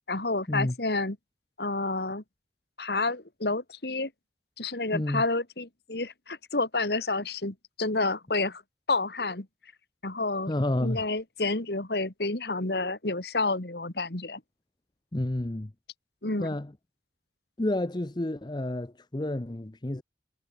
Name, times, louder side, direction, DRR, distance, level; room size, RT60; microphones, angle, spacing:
voice 1, 0.1-1.2 1.6-2.2 2.8-4.1 4.6-8.6 8.9-9.5 10.0-10.5 10.8-14.4 16.2-16.6, left 3 dB, 60° left, 2.2 m, -29 dB
voice 2, 4.9-5.2 10.5-11.0 15.1-15.7 16.4-16.7 17.6-20.0, left 1 dB, 25° left, 0.8 m, -30 dB
head